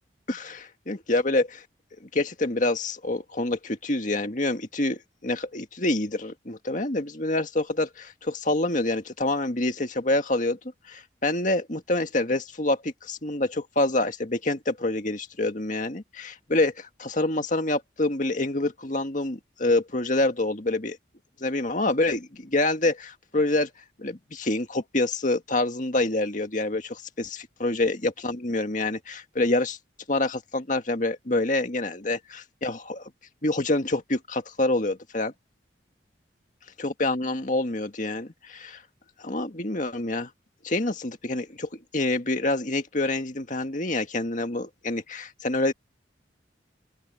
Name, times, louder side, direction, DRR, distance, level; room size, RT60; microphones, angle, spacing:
voice 1, 0.3-1.6 2.1-10.6 10.9-21.0 21.4-23.7 24.0-29.8 30.1-33.1 33.4-35.3 36.8-38.8 39.2-40.3 40.6-45.7, left 2 dB, 45° left, 1.9 m, -27 dB
open air
head